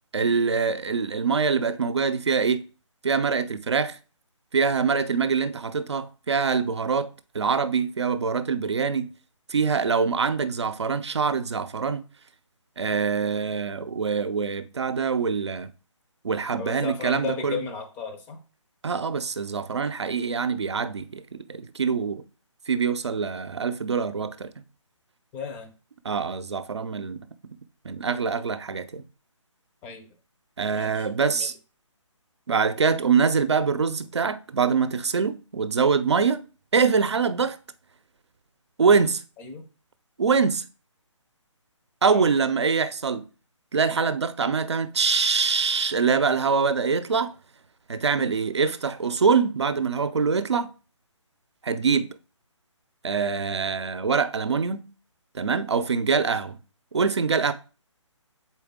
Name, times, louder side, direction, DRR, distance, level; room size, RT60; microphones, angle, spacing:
voice 1, 0.1-2.7 3.0-4.0 4.5-9.1 9.5-12.0 12.8-15.7 16.2-17.6 18.8-22.2 22.7-24.5 26.0-27.2 27.8-29.0 30.6-31.5 32.5-36.4 36.7-37.6 38.8-39.2 40.2-40.6 42.0-43.3 43.7-47.4 47.9-50.7 51.6-52.2 53.0-54.8 55.3-56.6 56.9-57.5, right 5 dB, 60° right, 0.7 m, -24 dB
voice 2, 16.6-18.4 25.3-25.7 29.8-30.1 30.7-31.5 39.4-39.7 42.1-42.5, left 5 dB, 10° left, 0.6 m, -35 dB
7.0 x 4.4 x 3.6 m
figure-of-eight pair, 145°, 16 cm